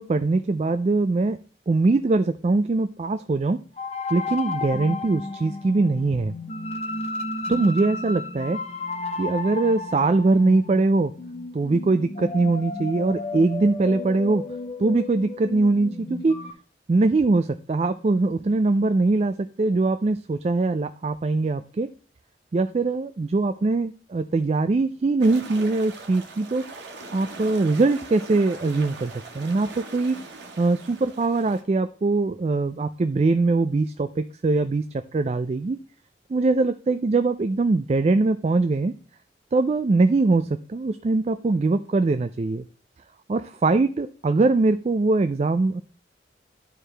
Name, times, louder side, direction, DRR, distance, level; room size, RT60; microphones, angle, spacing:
voice 1, 0.0-1.4 1.7-3.6 4.1-6.3 7.5-8.6 9.2-11.1 11.5-14.4 14.8-16.4 16.9-21.9 22.5-26.6 27.1-30.2 30.6-34.8 35.1-35.8 36.3-38.9 39.5-42.6 43.3-45.8, right 3 dB, 35° right, 9 dB, 0.3 m, -22 dB
sound 1, 3.8-16.5, left 2 dB, 35° left, 0.8 m, -33 dB
sound 2, 25.2-31.6, right 3 dB, 85° right, 1.5 m, -41 dB
11.5 x 4.7 x 3.3 m, 0.41 s
head